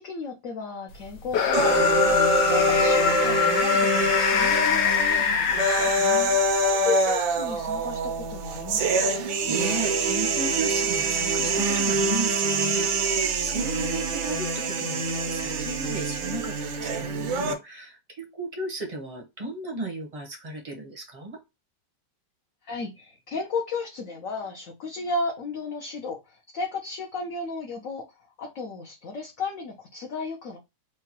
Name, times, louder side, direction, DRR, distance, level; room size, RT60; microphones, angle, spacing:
voice 1, 0.0-6.2 6.6-9.3 22.6-28.1 28.4-30.6, left 3 dB, 60° left, 0.9 m, -34 dB
sound 1, 1.3-6.5, left 7 dB, 80° left, 1.6 m, -24 dB
sound 2, 1.5-17.5, right 2 dB, 80° right, 1.5 m, -25 dB
voice 2, 5.9-6.7 9.2-21.4, right 2 dB, 30° right, 0.7 m, -35 dB
4.8 x 2.3 x 2.9 m
omnidirectional pair, 2.1 m